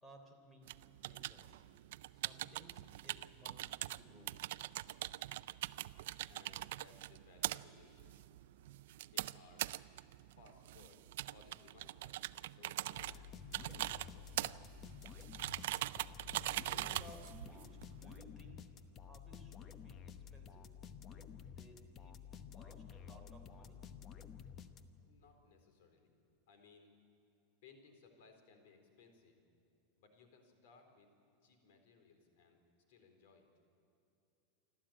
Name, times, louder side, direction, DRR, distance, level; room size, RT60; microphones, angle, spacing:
voice 1, 0.0-1.6 2.1-4.4 16.4-18.6 19.0-23.9, right 1 dB, 10° left, 3 dB, 3.5 m, -61 dB
sound 1, 0.6-18.2, right 15 dB, 70° right, 0.4 m, -43 dB
voice 2, 6.3-8.2 9.1-9.7 10.4-14.6 25.0-26.1 26.5-26.9 27.6-29.4 30.0-31.1 31.4-32.6 32.9-33.5, left 4 dB, 65° left, 6 dB, 4.0 m, -64 dB
sound 2, 13.0-25.2, left 7 dB, 25° left, 0.8 m, -52 dB
28.0 x 13.0 x 8.9 m, 2.7 s
supercardioid pair, 155°, 0 cm